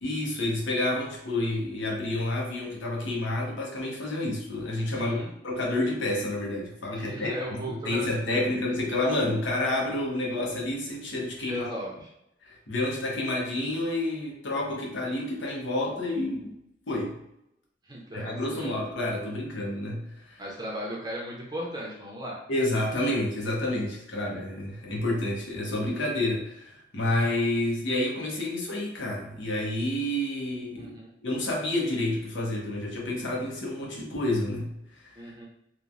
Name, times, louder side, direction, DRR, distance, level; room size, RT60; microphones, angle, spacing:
voice 1, 0.0-11.7 12.4-16.5 16.9-17.2 18.1-20.4 22.5-30.9 31.2-35.2, left 1 dB, 80° left, -2 dB, 0.8 m, -29 dB
voice 2, 4.9-5.3 6.9-8.4 11.5-12.1 17.8-18.7 20.4-22.4 22.9-23.0 30.8-31.1 35.1-35.5, equal, 20° right, -3 dB, 0.6 m, -37 dB
3.1 x 2.1 x 2.5 m, 0.82 s
head